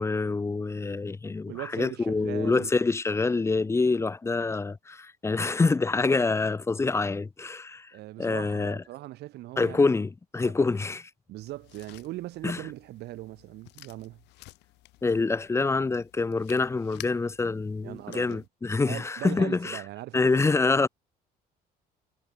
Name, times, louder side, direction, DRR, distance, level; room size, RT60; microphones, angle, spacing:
voice 1, 0.0-7.9 8.2-8.8 9.6-11.0 12.4-12.6 15.0-19.8 20.1-20.9, left 3 dB, 15° left, 0.6 m, -26 dB
voice 2, 1.5-2.7 7.9-10.0 10.4-10.5 11.3-14.2 17.8-18.4 18.9-20.4, right 16 dB, 80° right, 3.1 m, -40 dB
sound 1, 11.3-18.5, left 20 dB, 90° left, 4.8 m, -52 dB
cardioid pair, 110°, 17 cm